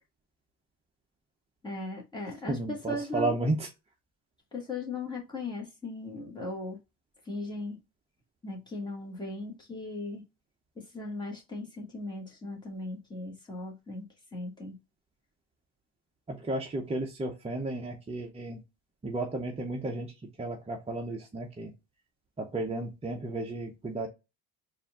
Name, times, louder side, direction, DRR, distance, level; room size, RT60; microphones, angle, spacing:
voice 1, 1.6-3.3 4.5-6.8 7.3-7.8 8.4-10.2 10.9-14.0 14.3-14.7, left 2 dB, 10° left, 1.6 m, -38 dB
voice 2, 2.5-3.7 16.3-18.6 19.0-20.1 20.4-21.7 22.4-24.1, right 2 dB, 15° right, 0.7 m, -33 dB
4.2 x 2.6 x 3.5 m
cardioid pair, 110°, 44 cm